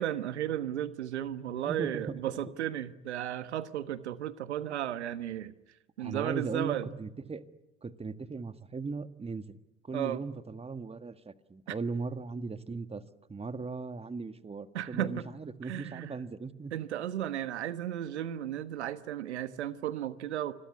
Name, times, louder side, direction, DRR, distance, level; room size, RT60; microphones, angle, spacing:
voice 1, 0.0-5.5 6.0-6.9 9.9-10.2 11.7-11.8 14.7-15.2 15.6-16.2 16.7-20.5, right 11 dB, 85° right, 13 dB, 1.3 m, -34 dB
voice 2, 1.6-2.2 4.7-4.8 6.0-7.4 7.8-9.6 9.8-13.0 13.3-16.7, right 4 dB, 20° right, 11 dB, 1.8 m, -38 dB
27.5 x 22.0 x 9.6 m, 0.99 s
hypercardioid pair, 75°, 33 cm